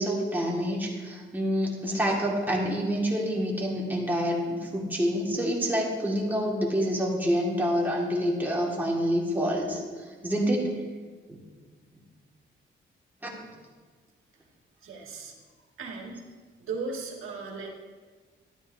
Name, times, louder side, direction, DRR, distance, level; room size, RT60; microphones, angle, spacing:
voice 1, 0.0-10.7 11.3-11.4 13.2-13.3, equal, 10° right, -3 dB, 1.9 m, -27 dB
voice 2, 14.8-15.4 15.8-16.2 16.6-17.7, right 4 dB, 85° right, -1 dB, 1.8 m, -36 dB
13.5 x 11.5 x 2.7 m, 1.5 s
wide cardioid pair, 155°, 21 cm